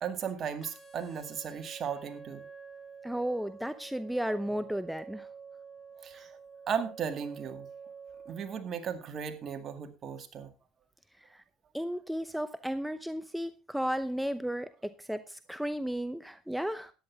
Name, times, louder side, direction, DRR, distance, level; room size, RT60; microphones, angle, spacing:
voice 1, 0.0-2.5 6.0-6.4 6.7-7.7 8.3-10.5, right 7 dB, 45° right, 7 dB, 2.1 m, -36 dB
sound 1, 0.6-8.6, right 5 dB, 20° left, 3.1 m, -49 dB
voice 2, 3.0-5.3 6.1-6.2 11.3-11.4 11.7-16.9, equal, ahead, 12 dB, 0.7 m, -34 dB
13.5 x 10.0 x 3.5 m, 0.30 s
supercardioid pair, 90°, 0 cm